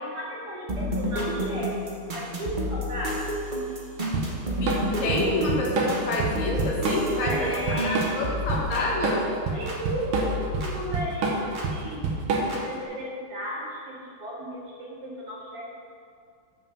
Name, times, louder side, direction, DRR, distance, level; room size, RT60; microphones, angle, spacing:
voice 1, 0.0-1.7 2.1-3.3 7.2-8.4 9.5-10.0 10.3-12.1 12.4-15.8, equal, 50° right, -7 dB, 2.6 m, -35 dB
sound 1, 0.7-9.8 10.1-11.7 12.5-12.6, equal, 35° right, 0.8 m, -31 dB
Drum kit / Drum, 4.1-12.7, right 4 dB, 75° right, 1.9 m, -28 dB
voice 2, 4.6-9.3, left 2 dB, 75° left, -2 dB, 2.2 m, -28 dB
7.0 x 5.5 x 6.7 m, 2.2 s
omnidirectional pair, 2.4 m